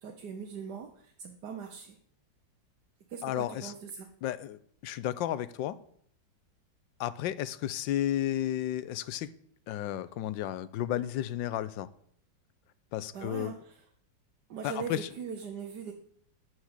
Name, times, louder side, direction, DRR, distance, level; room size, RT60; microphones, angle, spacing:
voice 1, 0.0-2.0 3.1-4.1 13.1-13.7 14.5-15.9, right 6 dB, 65° right, 1.5 m, -40 dB
voice 2, 3.2-3.7 4.2-5.8 7.0-9.3 9.7-11.9 12.9-13.6 14.6-15.1, left 12 dB, 85° left, 1.3 m, -33 dB
12.0 x 4.9 x 8.1 m
omnidirectional pair, 2.0 m